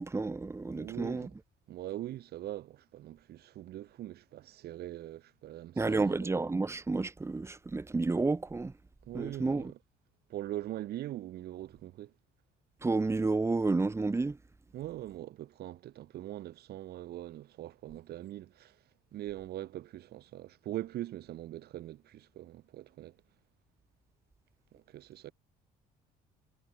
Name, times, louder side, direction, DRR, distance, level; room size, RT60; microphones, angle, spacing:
voice 1, 0.0-1.3 5.8-8.7 9.1-9.7 12.8-14.4, right 3 dB, 15° right, 1.4 m, -30 dB
voice 2, 0.7-1.3 1.7-6.3 9.0-9.8 10.3-12.1 14.7-18.8 19.1-23.2 24.7-25.3, right 14 dB, 70° right, 5.6 m, -42 dB
cardioid pair, 110°, 17 cm